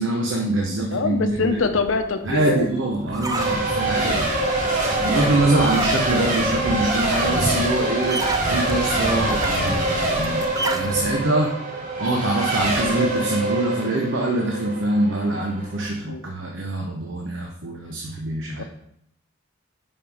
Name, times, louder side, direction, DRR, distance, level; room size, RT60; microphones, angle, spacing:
voice 1, 0.0-1.6 2.2-4.3 5.0-11.6 12.0-18.6, right 2 dB, 75° right, 0 dB, 0.9 m, -24 dB
voice 2, 0.7-2.6 4.0-4.2 5.3-5.4 16.1-16.2 18.6-18.7, left 4 dB, 90° left, 8 dB, 0.7 m, -25 dB
Swing Sound, 1.2-11.2, right 2 dB, 20° right, 0.4 m, -31 dB
Race car auto racing / Accelerating revving vroom / Mechanisms, 3.4-15.9, right 2 dB, 45° right, 1.5 m, -24 dB
5.4 x 5.1 x 4.8 m, 0.71 s
head